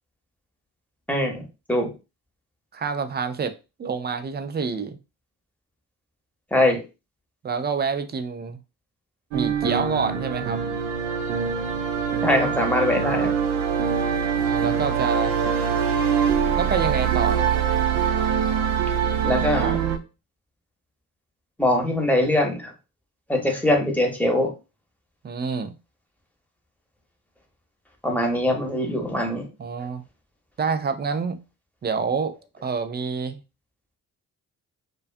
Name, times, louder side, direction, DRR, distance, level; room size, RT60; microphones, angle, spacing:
voice 1, 1.1-1.4 1.7-1.9 6.5-6.8 12.2-13.3 19.2-19.8 21.6-22.7 23.3-24.5 28.0-29.4, left 1 dB, 5° left, 0.9 m, -22 dB
voice 2, 2.7-3.5 3.8-5.0 7.4-8.6 9.3-10.6 14.4-15.4 16.6-17.6 25.2-25.7 29.6-30.0 30.6-31.4 31.8-33.4, right 5 dB, 25° right, 0.3 m, -27 dB
sound 1, 9.3-20.0, right 7 dB, 75° right, 0.6 m, -23 dB
2.4 x 2.3 x 2.5 m
hypercardioid pair, 45°, 43 cm